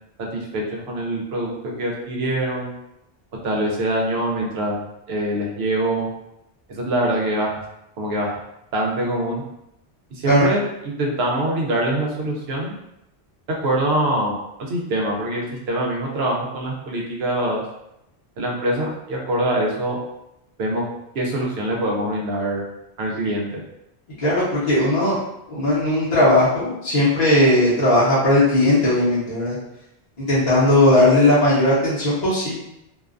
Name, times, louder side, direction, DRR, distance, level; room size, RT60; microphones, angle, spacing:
voice 1, 0.3-2.7 3.4-6.1 6.7-7.6 8.0-8.4 8.7-9.4 10.1-12.7 13.6-17.6 18.4-20.0 20.6-20.8 21.1-22.6 23.0-23.6, right 1 dB, 70° right, -1 dB, 0.9 m, -24 dB
voice 2, 24.2-25.2 25.5-29.6 30.2-32.5, left 1 dB, 40° left, -9 dB, 0.8 m, -17 dB
2.5 x 2.2 x 2.4 m, 0.83 s
omnidirectional pair, 1.1 m